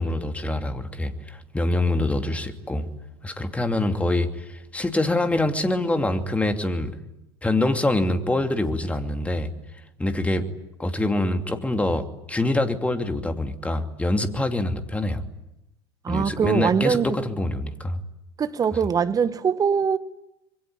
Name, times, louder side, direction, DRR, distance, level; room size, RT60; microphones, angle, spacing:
voice 1, 0.0-2.9 3.2-7.0 7.4-9.5 10.0-10.5 10.8-15.2 16.1-18.0, left 2 dB, 10° left, 2.7 m, -25 dB
voice 2, 16.0-17.2 18.4-20.0, right 6 dB, 25° right, 1.4 m, -22 dB
26.5 x 23.0 x 9.6 m
hypercardioid pair, 80°, 14 cm